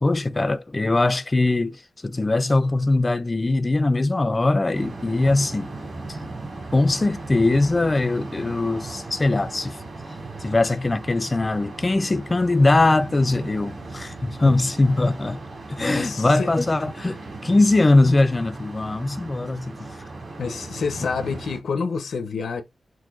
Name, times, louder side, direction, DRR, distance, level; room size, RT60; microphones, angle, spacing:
voice 1, 0.0-5.8 6.1-6.3 6.7-9.8 10.4-15.4 15.7-20.0, left 2 dB, 25° left, 0.4 m, -21 dB
sound 1, 4.7-21.6, right 3 dB, 50° right, 2.3 m, -37 dB
voice 2, 15.9-16.5 20.4-22.6, left 5 dB, 90° left, 0.7 m, -28 dB
5.9 x 2.6 x 2.4 m
wide cardioid pair, 150°, 0 cm